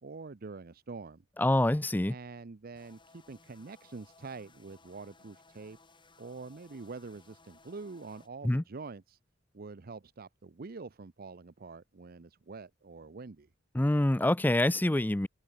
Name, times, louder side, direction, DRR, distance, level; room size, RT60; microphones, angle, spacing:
voice 1, 0.0-1.2 2.1-5.8 6.2-9.2 9.5-13.5, right 4 dB, 50° right, 0.6 m, -45 dB
voice 2, 1.4-2.1 8.4-8.6 13.7-15.3, left 1 dB, 10° left, 0.5 m, -26 dB
sound 1, 2.8-8.3, left 3 dB, 25° left, 7.3 m, -61 dB
open air
head